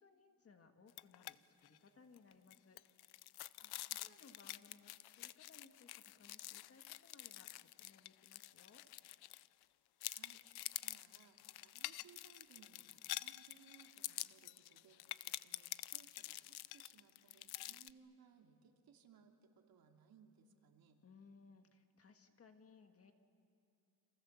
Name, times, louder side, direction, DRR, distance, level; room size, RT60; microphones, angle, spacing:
voice 1, 0.0-2.8 4.0-8.8 21.0-23.1, left 4 dB, 35° left, 6 dB, 1.8 m, -64 dB
sound 1, 0.9-1.3 1.6-1.8 2.2-9.6 10.0-17.9, left 16 dB, 70° left, 0.6 m, -48 dB
voice 2, 3.6-4.2 10.0-21.0, right 7 dB, 60° right, 3 dB, 2.8 m, -66 dB
30.0 x 27.0 x 7.2 m, 2.6 s
cardioid pair, 140°, 40 cm